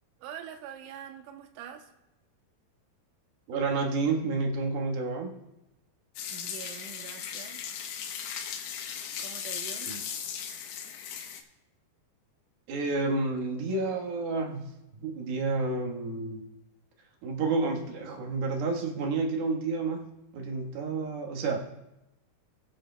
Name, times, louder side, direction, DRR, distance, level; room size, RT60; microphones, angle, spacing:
voice 1, 0.2-1.9 6.3-7.7 9.2-10.0, right 9 dB, 85° right, 4 dB, 1.9 m, -44 dB
voice 2, 3.5-5.3 9.8-10.0 12.7-16.4 17.2-21.6, right 3 dB, 70° right, 1 dB, 3.1 m, -30 dB
sound 1, 6.2-11.4, left 8 dB, 75° left, 2.8 m, -37 dB
20.0 x 9.6 x 2.2 m, 0.90 s
omnidirectional pair, 4.9 m